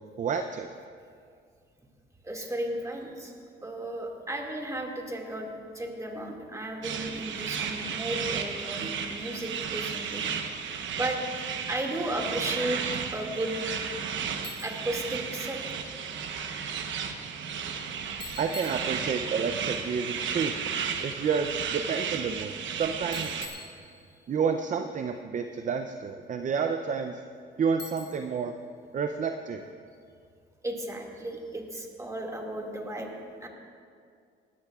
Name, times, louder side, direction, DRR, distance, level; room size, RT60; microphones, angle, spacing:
voice 1, 0.2-0.7 18.4-20.5 21.0-23.4 24.3-27.2 27.6-28.5 28.9-29.7, right 6 dB, 40° right, 7 dB, 0.5 m, -30 dB
voice 2, 2.2-10.2 10.9-11.2 11.7-12.8 13.1-14.1 14.6-15.8 30.6-33.5, right 1 dB, 15° right, 0 dB, 2.1 m, -34 dB
sound 1, 6.8-23.5, right 7 dB, 70° right, 1.0 m, -34 dB
Bicycle, 14.4-15.0 18.2-19.4 23.1-24.4 27.8-28.5, left 4 dB, 50° left, 1.5 m, -44 dB
19.0 x 13.5 x 2.4 m, 2.2 s
cardioid pair, 90°, 20 cm